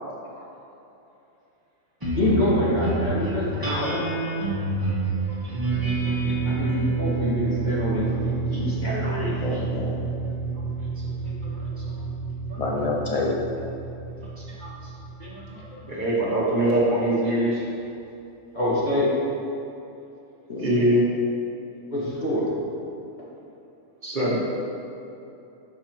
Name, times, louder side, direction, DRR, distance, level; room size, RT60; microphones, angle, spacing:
sound 1, 2.0-16.7, right 3 dB, 15° right, 1.3 m, -28 dB
voice 1, 2.1-4.0 6.4-9.7 18.5-19.1 21.9-22.5, left 1 dB, 35° left, -9 dB, 1.7 m, -26 dB
voice 2, 9.4-10.0 12.6-13.4 20.5-20.9, left 3 dB, 75° left, -2 dB, 0.3 m, -28 dB
voice 3, 15.2-15.6 15.9-17.6 20.6-21.0 24.0-24.4, right 1 dB, 40° right, -6 dB, 1.1 m, -23 dB
6.2 x 6.2 x 3.0 m, 2.8 s
omnidirectional pair, 1.3 m